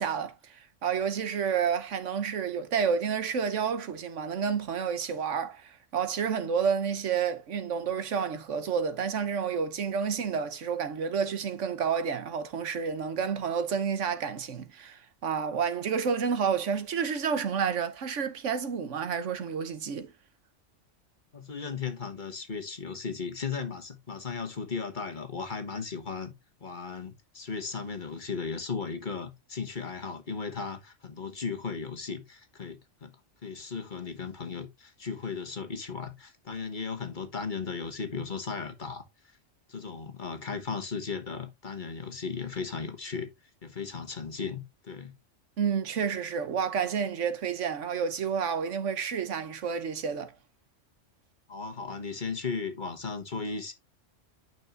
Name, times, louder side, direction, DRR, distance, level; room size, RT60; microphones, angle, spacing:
voice 1, 0.0-20.1 45.6-50.3, right 6 dB, 80° right, 1.3 m, -30 dB
voice 2, 21.3-26.3 26.6-33.1 33.4-39.0 39.7-43.3 43.6-45.1 51.5-53.7, left 5 dB, 40° left, 1.4 m, -36 dB
8.8 x 6.0 x 2.5 m
omnidirectional pair, 1.3 m